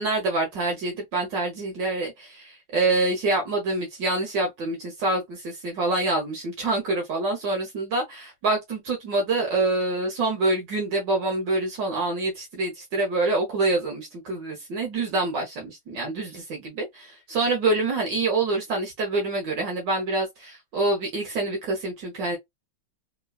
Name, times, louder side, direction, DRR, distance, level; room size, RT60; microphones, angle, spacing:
voice 1, 0.0-22.4, right 2 dB, 70° right, 1.6 m, -26 dB
3.7 x 2.9 x 2.3 m
omnidirectional pair, 2.1 m